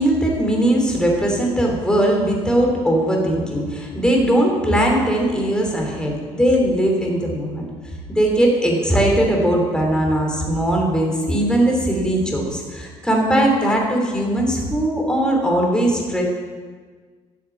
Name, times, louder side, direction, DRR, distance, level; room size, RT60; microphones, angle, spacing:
voice 1, 0.0-7.6 8.1-16.2, right 1 dB, 5° left, 0 dB, 3.0 m, -19 dB
12.0 x 7.2 x 7.1 m, 1.5 s
cardioid pair, 110°, 13 cm